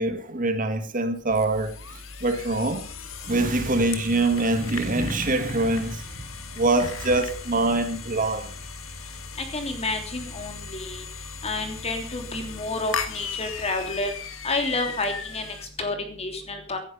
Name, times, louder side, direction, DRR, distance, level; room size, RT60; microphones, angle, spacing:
voice 1, 0.0-1.7 2.2-2.9 3.2-6.2 6.5-8.5, right 2 dB, 40° right, 1.8 m, -24 dB
sound 1, 1.3-15.7, left 6 dB, 80° left, 1.9 m, -37 dB
voice 2, 9.4-11.0 11.4-14.1 14.4-16.8, left 2 dB, 30° left, 3.3 m, -30 dB
17.5 x 11.0 x 5.4 m
head